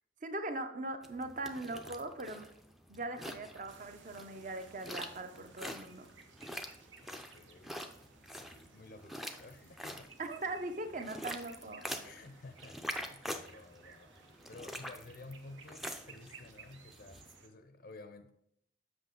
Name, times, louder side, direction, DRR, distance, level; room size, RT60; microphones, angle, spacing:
voice 1, 0.2-2.5 2.9-6.1 10.2-11.8, right 2 dB, 40° right, 8 dB, 0.7 m, -40 dB
sound 1, 1.0-17.4, equal, ahead, 0.4 m, -46 dB
sound 2, 3.7-17.5, right 5 dB, 70° right, 0.9 m, -59 dB
voice 2, 7.0-7.8 8.2-10.1 12.0-18.3, left 2 dB, 50° left, 7 dB, 0.5 m, -53 dB
7.9 x 6.0 x 3.8 m, 0.74 s
head